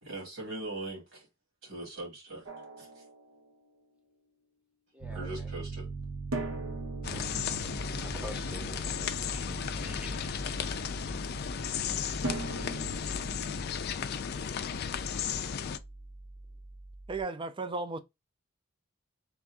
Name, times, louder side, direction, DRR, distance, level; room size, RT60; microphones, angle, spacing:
voice 1, 0.0-1.3 1.6-2.4 2.8-2.9 5.1-5.9, right 2 dB, 65° right, 2.1 m, -40 dB
Drum, 2.5-3.8 6.3-9.3 12.2-15.1, right 1 dB, 80° right, 0.7 m, -42 dB
voice 2, 4.9-5.5 7.0-7.3 8.0-10.8, equal, 5° right, 0.8 m, -49 dB
Piano, 5.0-17.2, right 3 dB, 40° right, 0.7 m, -42 dB
sound 1, 7.0-15.8, left 7 dB, 50° left, 0.3 m, -35 dB
voice 3, 17.1-18.0, right 3 dB, 25° right, 0.3 m, -34 dB
3.5 x 2.6 x 3.4 m
head